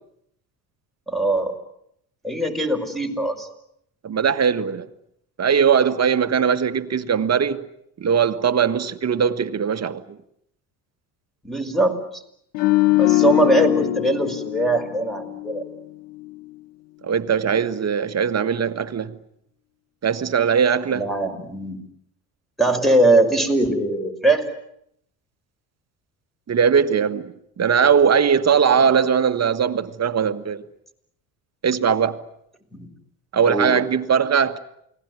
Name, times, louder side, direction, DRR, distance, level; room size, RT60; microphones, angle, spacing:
voice 1, 1.1-1.5 2.2-3.5 11.4-12.2 13.0-15.6 20.9-21.8 22.6-24.5 32.7-32.9 33.5-33.8, right 2 dB, ahead, 5.8 m, -21 dB
voice 2, 4.0-4.9 5.4-7.6 8.0-10.0 17.0-19.2 20.0-21.1 26.5-30.6 31.6-32.2 33.3-34.6, right 7 dB, 35° right, 1.7 m, -20 dB
sound 1, 12.5-15.8 16.1-16.4, left 19 dB, 70° left, 1.2 m, -22 dB
29.0 x 20.5 x 9.6 m
supercardioid pair, 75°, 43 cm